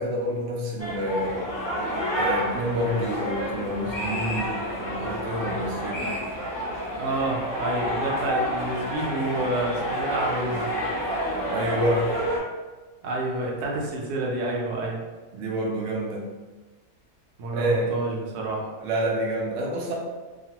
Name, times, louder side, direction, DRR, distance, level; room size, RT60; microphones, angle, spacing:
voice 1, 0.0-1.5 2.2-6.1 11.4-12.1 15.3-16.3 17.5-18.0 18.8-19.9, right 1 dB, 65° right, -2 dB, 0.9 m, -28 dB
sound 1, 0.8-12.4, equal, 40° left, 0.7 m, -29 dB
voice 2, 7.0-10.7 13.0-15.0 17.4-18.7, right 2 dB, 85° right, -2 dB, 1.2 m, -28 dB
2.9 x 2.3 x 2.8 m, 1.2 s
omnidirectional pair, 1.6 m